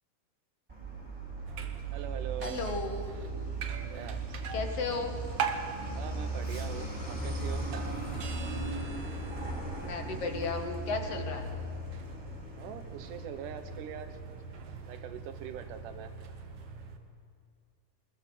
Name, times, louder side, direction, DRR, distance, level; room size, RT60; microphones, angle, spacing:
Truck, 0.7-16.9, right 2 dB, 10° right, 4.7 m, -39 dB
sound 1, 1.5-17.0, right 6 dB, 60° right, 1.9 m, -42 dB
voice 1, 1.9-2.6 3.8-4.4 5.9-7.7 12.6-14.2 14.8-16.1, right 9 dB, 80° right, 9 dB, 2.6 m, -43 dB
voice 2, 2.4-3.0 4.5-5.2 9.8-11.5, left 4 dB, 50° left, 4 dB, 2.7 m, -34 dB
24.0 x 21.5 x 7.1 m, 2.2 s
omnidirectional pair, 3.7 m